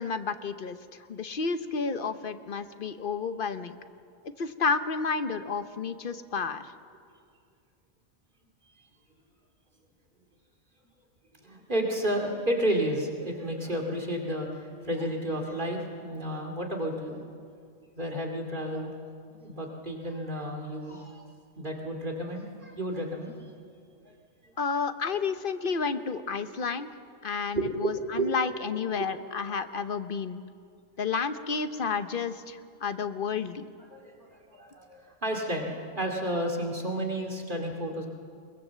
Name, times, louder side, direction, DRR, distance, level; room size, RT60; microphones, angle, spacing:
voice 1, 0.0-3.7 4.2-6.7 24.6-26.9 27.2-30.4 31.0-33.7, left 5 dB, 50° left, 10 dB, 1.0 m, -31 dB
voice 2, 11.4-17.3 18.0-18.9 19.3-21.2 21.6-23.4 24.4-24.5 27.6-28.6 33.9-38.1, right 1 dB, 45° right, 1 dB, 2.6 m, -32 dB
22.0 x 21.0 x 7.5 m, 2.2 s
omnidirectional pair, 1.2 m